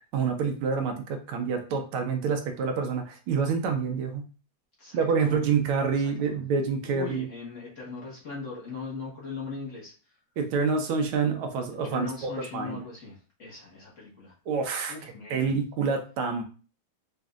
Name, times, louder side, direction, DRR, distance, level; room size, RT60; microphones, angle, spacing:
voice 1, 0.1-4.3 4.9-7.3 10.4-12.8 14.5-14.9 15.3-16.4, right 5 dB, 80° right, 5 dB, 1.5 m, -27 dB
voice 2, 4.8-5.5 6.0-6.4 6.9-10.1 11.7-14.3 14.9-15.5, left 4 dB, 40° left, -5 dB, 1.4 m, -39 dB
5.1 x 2.6 x 2.4 m, 0.36 s
omnidirectional pair, 2.3 m